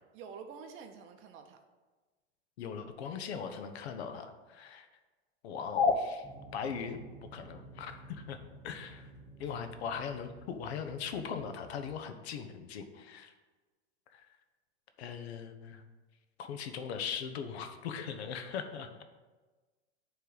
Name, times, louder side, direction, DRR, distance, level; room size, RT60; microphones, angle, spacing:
voice 1, 0.1-1.6 9.4-9.5, right 6 dB, 35° right, 6 dB, 0.7 m, -48 dB
voice 2, 2.6-4.9 5.4-6.3 6.5-7.0 7.3-8.4 8.6-9.1 9.4-13.3 14.1-14.3 15.0-15.8 16.4-18.9, left 5 dB, 70° left, 8 dB, 0.8 m, -37 dB
sound 1, 6.2-12.1, right 1 dB, ahead, 0.8 m, -52 dB
9.0 x 3.3 x 3.9 m, 1.3 s
hypercardioid pair, 110°, 34 cm